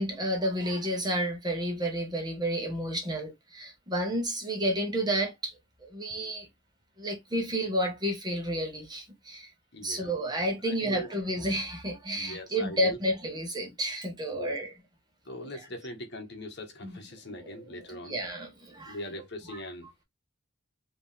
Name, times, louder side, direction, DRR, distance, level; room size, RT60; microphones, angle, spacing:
voice 1, 0.0-6.5 7.0-9.5 9.8-14.7 16.8-16.9 17.3-17.6 18.0-19.0, right 1 dB, 20° right, 1.3 m, -31 dB
voice 2, 9.7-10.1 10.6-11.1 12.1-13.0 14.3-14.6 15.2-18.1 18.9-20.0, left 1 dB, 50° left, 1.5 m, -41 dB
5.1 x 3.1 x 3.4 m
head